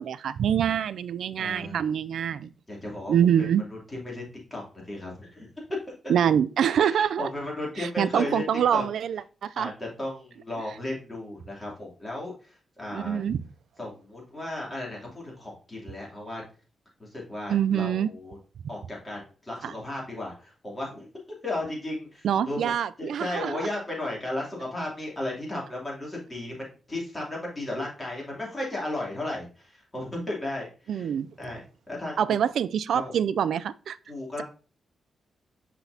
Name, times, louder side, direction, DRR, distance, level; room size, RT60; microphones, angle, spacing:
voice 1, 0.0-2.5 3.1-3.6 6.1-7.3 7.8-9.7 12.9-13.4 17.5-18.1 19.6-19.7 22.2-23.6 30.9-31.3 32.2-34.0, right 9 dB, 80° right, 0.3 m, -25 dB
voice 2, 1.4-1.8 2.7-3.1 3.7-5.5 5.9-6.0 6.8-8.4 8.7-8.8 9.6-13.2 13.8-16.4 17.0-18.4 18.7-21.1 21.4-22.7 23.0-31.1 31.4-32.2 32.9-33.1 34.1-34.4, left 1 dB, 15° left, 2.8 m, -35 dB
6.0 x 5.7 x 2.7 m
cardioid pair, 105°, 0 cm